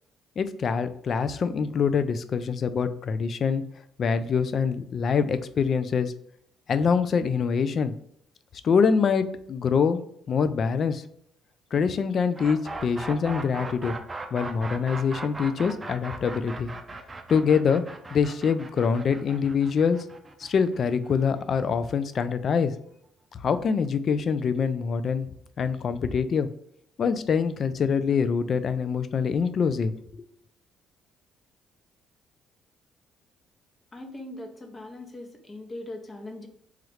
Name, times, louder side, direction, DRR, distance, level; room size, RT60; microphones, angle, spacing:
voice 1, 0.4-3.6 4.0-6.1 6.7-7.9 8.6-10.0 10.3-11.0 11.7-13.9 14.3-16.7 17.3-17.8 18.1-20.0 20.4-22.7 23.3-25.3 25.6-26.5 27.0-29.9, left 6 dB, 55° left, 12 dB, 0.3 m, -24 dB
sound 1, 12.3-22.2, right 2 dB, 25° right, 0.5 m, -38 dB
voice 2, 33.9-36.5, left 1 dB, 35° left, 3 dB, 0.7 m, -40 dB
3.1 x 2.3 x 3.1 m, 0.70 s
supercardioid pair, 65°, 0 cm